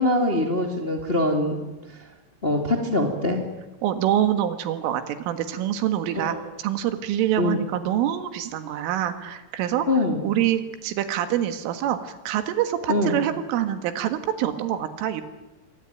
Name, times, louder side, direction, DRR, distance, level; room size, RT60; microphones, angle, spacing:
voice 1, 0.0-1.6 2.4-3.4 6.1-6.4 7.4-7.6 9.9-10.2 12.9-13.2, left 1 dB, 20° left, 3 dB, 1.6 m, -23 dB
voice 2, 3.8-15.2, right 11 dB, 90° right, 9 dB, 4.2 m, -26 dB
25.5 x 23.5 x 9.1 m, 1.1 s
omnidirectional pair, 5.6 m